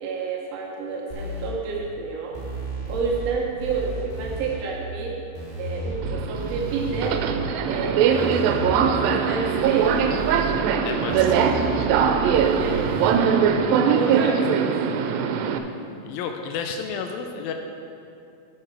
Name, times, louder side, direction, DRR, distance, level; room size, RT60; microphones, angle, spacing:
voice 1, 0.0-2.3 2.9-5.1 5.6-7.2 7.7-8.4 9.0-10.0 12.6-12.9 13.9-14.7, right 5 dB, 70° right, -2 dB, 1.6 m, -29 dB
sound 1, 1.1-1.5 2.3-3.3 3.6-4.5 5.3-7.5 8.1-9.2 9.6-10.5 11.1-13.1, right 1 dB, 30° right, 2.6 m, -33 dB
Subway metro underground, 6.0-15.6, right 7 dB, 90° right, 2.4 m, -21 dB
voice 2, 10.9-12.0 14.1-14.4 16.0-17.5, left 6 dB, 90° left, 4 dB, 2.4 m, -32 dB
12.5 x 6.8 x 4.6 m, 2.6 s
omnidirectional pair, 4.0 m